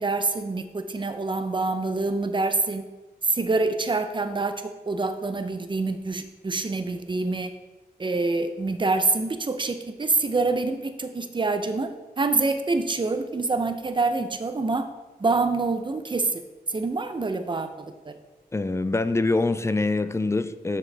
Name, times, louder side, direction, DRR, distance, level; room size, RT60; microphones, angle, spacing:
voice 1, 0.0-2.9 3.2-7.5 8.0-11.9 12.2-14.9 15.2-16.4 16.7-18.2, right 3 dB, 30° right, 9 dB, 0.6 m, -26 dB
voice 2, 18.5-20.8, left 3 dB, 15° left, 13 dB, 0.3 m, -24 dB
7.1 x 6.1 x 3.3 m, 1.2 s
wide cardioid pair, 75°, 16 cm